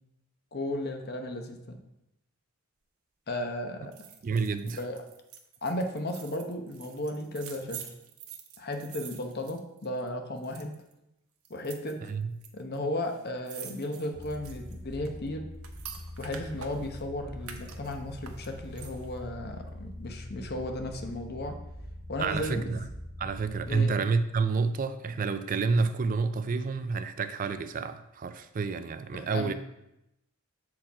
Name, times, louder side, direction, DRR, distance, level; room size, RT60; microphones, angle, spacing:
voice 1, 0.5-1.8 3.3-3.9 4.7-5.0 5.6-7.8 8.6-10.8 11.5-12.0 12.5-15.4 16.2-21.5 22.1-22.9 23.7-23.9 29.1-29.5, left 1 dB, 45° left, 0.9 m, -35 dB
sound 1, 3.9-10.1 10.4-10.9 11.4-12.5 12.7-12.8 13.0-17.0 17.4-19.2 19.6-19.7, right 8 dB, 75° right, 0.9 m, -47 dB
voice 2, 4.2-4.8 12.1-12.4 22.2-22.8 23.2-29.5, right 4 dB, 40° right, 0.3 m, -29 dB
sound 2, 14.1-23.7, left 1 dB, 20° left, 1.9 m, -43 dB
7.2 x 4.8 x 4.6 m
head